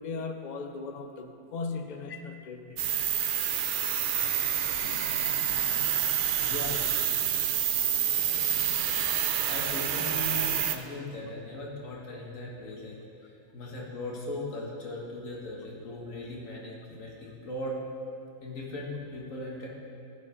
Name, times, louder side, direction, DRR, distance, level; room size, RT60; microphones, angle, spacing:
voice 1, 0.0-3.0 6.3-6.5 9.1-9.2 13.6-13.7, left 4 dB, 50° left, 6 dB, 0.5 m, -38 dB
sound 1, 2.8-10.8, right 9 dB, 65° right, 0.5 m, -28 dB
voice 2, 6.4-6.8 9.5-13.0 13.2-17.8 18.4-19.7, left 1 dB, 80° left, -3 dB, 2.0 m, -38 dB
13.5 x 5.2 x 5.1 m, 2.5 s
omnidirectional pair, 1.4 m